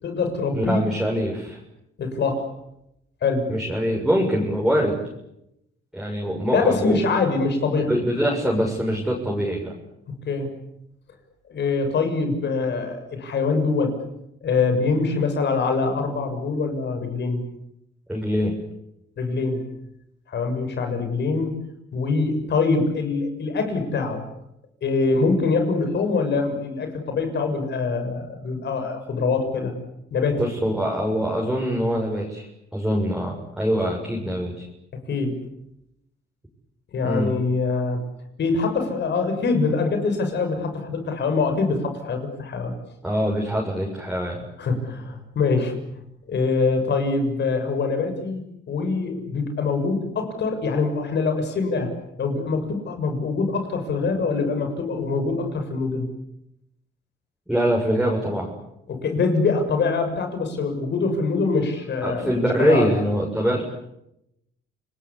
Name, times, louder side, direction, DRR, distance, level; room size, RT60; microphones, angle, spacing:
voice 1, 0.0-0.8 2.0-2.5 3.2-3.5 6.5-7.9 10.3-10.5 11.5-14.0 14.4-17.4 19.2-19.7 20.3-21.5 21.9-24.2 24.8-29.7 30.1-30.4 35.1-35.4 36.9-38.0 38.4-42.7 44.6-45.8 46.3-51.9 52.2-56.1 58.9-62.9, left 4 dB, 60° left, 6 dB, 7.0 m, -24 dB
voice 2, 0.5-1.6 3.5-5.0 5.9-7.0 7.9-9.7 18.1-18.6 30.4-32.5 32.7-34.7 37.0-37.3 43.0-44.4 57.5-58.5 62.0-63.6, equal, ahead, -2 dB, 7.1 m, -23 dB
30.0 x 20.5 x 8.6 m, 0.83 s
cardioid pair, 90°, 20 cm